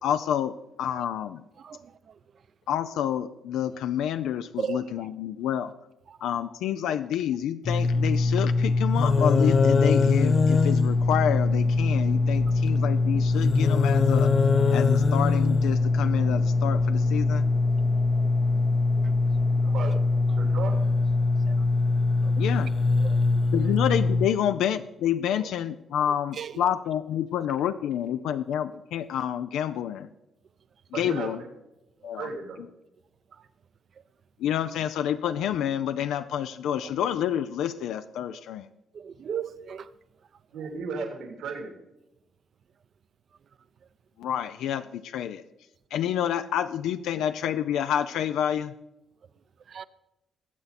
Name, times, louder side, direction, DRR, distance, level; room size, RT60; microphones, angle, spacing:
voice 1, 0.0-1.4 2.7-5.7 6.2-14.3 14.7-17.5 22.4-22.7 23.5-30.1 30.9-31.4 32.0-32.3 34.4-38.7 44.2-45.4 45.9-48.7, left 10 dB, 85° left, 0.5 m, -28 dB
sound 1, 7.6-24.3, left 3 dB, 40° left, 0.7 m, -22 dB
voice 2, 19.5-20.0 20.4-20.8 30.9-31.5 32.2-32.6 40.5-41.7, right 4 dB, 85° right, 2.9 m, -35 dB
voice 3, 38.9-39.9 49.7-49.9, right 7 dB, 55° right, 0.6 m, -34 dB
20.0 x 7.8 x 4.2 m
cardioid pair, 90°, 0 cm